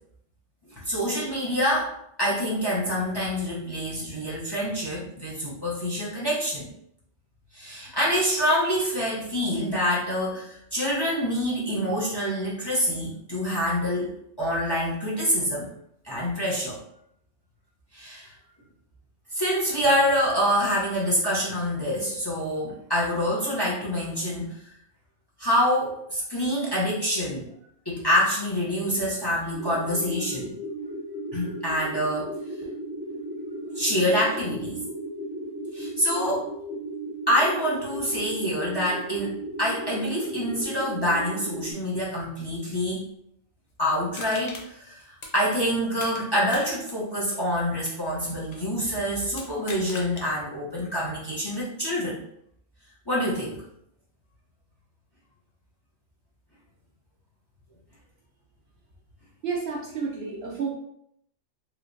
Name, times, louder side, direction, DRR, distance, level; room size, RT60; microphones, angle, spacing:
voice 1, 0.8-1.9 2.2-6.7 7.5-15.7 16.0-16.8 17.9-18.3 19.3-24.5 25.4-27.5 27.8-30.5 31.3-32.3 33.7-34.8 35.7-36.5 37.3-43.0 43.8-45.0 45.3-52.2 53.1-53.6, equal, 20° left, -6 dB, 0.7 m, -26 dB
sound 1, 29.5-41.7, right 1 dB, 10° right, 0.7 m, -35 dB
Crushing, 44.1-46.2 46.5-48.7 49.3-50.3 50.7-50.8, left 3 dB, 60° left, 0.4 m, -41 dB
voice 2, 59.4-60.7, right 5 dB, 60° right, -2 dB, 0.7 m, -30 dB
3.1 x 3.0 x 2.6 m, 0.73 s
omnidirectional pair, 1.4 m